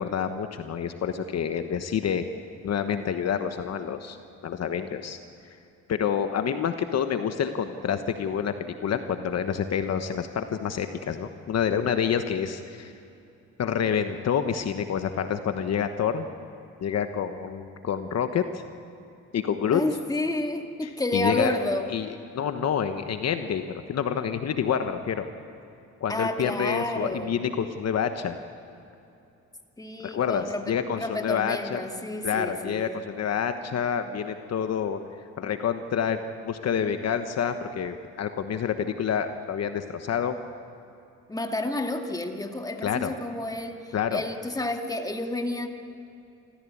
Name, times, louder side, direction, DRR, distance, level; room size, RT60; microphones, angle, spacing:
voice 1, 0.0-2.2 2.6-4.2 4.4-5.2 5.9-12.9 13.6-16.3 16.8-18.6 19.3-19.8 20.8-21.5 21.9-25.3 26.0-28.4 30.0-31.8 32.2-35.0 35.4-40.4 42.8-43.1 43.9-44.2, left 7 dB, 60° left, 8 dB, 1.3 m, -28 dB
voice 2, 19.7-21.9 26.1-27.3 29.8-33.0 41.3-45.7, left 2 dB, 10° left, 4 dB, 2.2 m, -30 dB
27.0 x 15.0 x 8.6 m, 2.7 s
cardioid pair, 90°, 30 cm